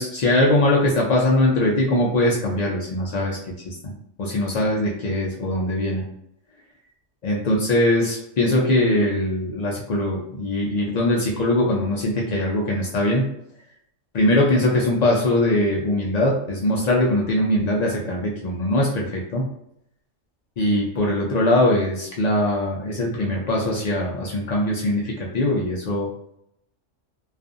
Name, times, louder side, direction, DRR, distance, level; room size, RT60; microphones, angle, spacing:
voice 1, 0.0-3.4 3.6-3.9 4.2-6.0 7.2-13.2 14.1-19.4 20.6-26.1, left 1 dB, 90° left, -2 dB, 0.3 m, -21 dB
2.5 x 2.3 x 2.4 m, 0.74 s
omnidirectional pair, 1.3 m